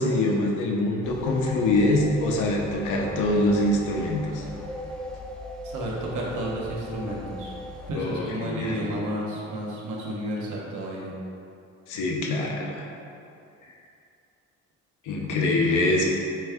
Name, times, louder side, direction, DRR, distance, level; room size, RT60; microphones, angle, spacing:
voice 1, 0.0-4.4 7.9-9.0 11.9-12.9 15.0-16.0, left 2 dB, 85° left, -1 dB, 0.7 m, -24 dB
sound 1, 1.0-7.9, left 1 dB, 5° left, 0.4 m, -38 dB
voice 2, 5.6-7.5 7.9-11.1, right 1 dB, 80° right, -4 dB, 0.9 m, -31 dB
3.5 x 3.2 x 3.4 m, 2.6 s
cardioid pair, 90°, 30 cm